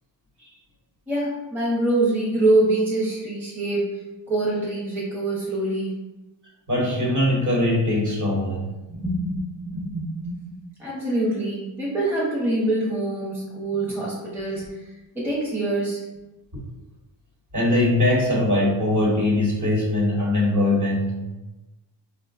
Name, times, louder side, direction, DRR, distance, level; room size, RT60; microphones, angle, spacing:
voice 1, 1.1-6.0 8.9-16.0, right 2 dB, 5° right, -7 dB, 0.7 m, -25 dB
voice 2, 6.7-8.7 17.5-21.2, left 1 dB, 40° right, -4 dB, 1.1 m, -21 dB
4.1 x 2.2 x 2.4 m, 1.1 s
wide cardioid pair, 120°, 46 cm